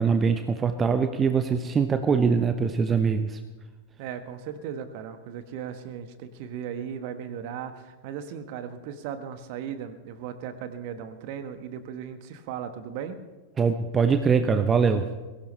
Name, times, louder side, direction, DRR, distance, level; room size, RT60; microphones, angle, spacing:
voice 1, 0.0-3.4 13.6-15.1, right 5 dB, 20° right, 8 dB, 0.9 m, -23 dB
voice 2, 4.0-13.2, right 8 dB, 45° right, 9 dB, 1.4 m, -37 dB
22.0 x 17.5 x 3.3 m, 1.2 s
figure-of-eight pair, 90°, 0 cm